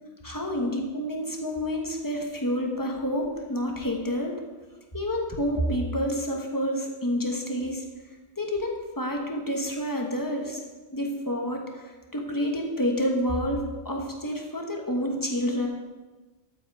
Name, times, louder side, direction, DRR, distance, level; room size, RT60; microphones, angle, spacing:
voice 1, 0.2-4.3 4.9-7.8 8.4-10.6 10.9-15.7, equal, 20° left, 1 dB, 1.3 m, -29 dB
12.5 x 5.6 x 4.7 m, 1.3 s
omnidirectional pair, 1.1 m